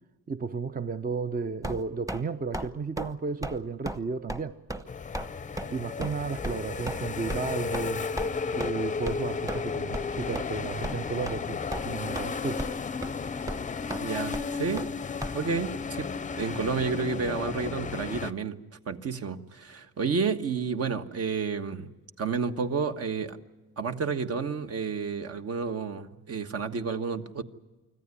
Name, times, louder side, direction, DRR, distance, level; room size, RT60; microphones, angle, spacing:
voice 1, 0.3-4.6 5.7-8.1 8.5-12.6, right 5 dB, 30° right, 0.7 m, -33 dB
sound 1, 1.6-2.2 2.5-2.7 3.0-3.1 3.4-3.6 3.9-4.0 4.3-4.4 4.7-4.8 5.1-5.3 5.6-5.7 6.0-6.1 6.4-6.5 6.9-7.0 7.3-7.4 7.7-7.9 8.2-8.3 8.6-8.7 9.1-9.2 9.5-9.6 9.9-10.1 10.3-10.4 10.8-11.0 11.3-11.4 11.7-12.3 12.6-12.8 13.0-13.1 13.5-13.6 13.9-14.0 14.3-14.5 14.8-14.9 15.2-15.3, right 1 dB, 10° right, 1.1 m, -34 dB
sound 2, 4.9-18.3, left 5 dB, 25° left, 0.7 m, -34 dB
voice 2, 14.0-14.9 15.3-18.6 18.9-21.9 22.2-23.4 23.8-27.4, right 5 dB, 50° right, 1.4 m, -30 dB
25.0 x 14.5 x 9.8 m
cardioid pair, 90°, 30 cm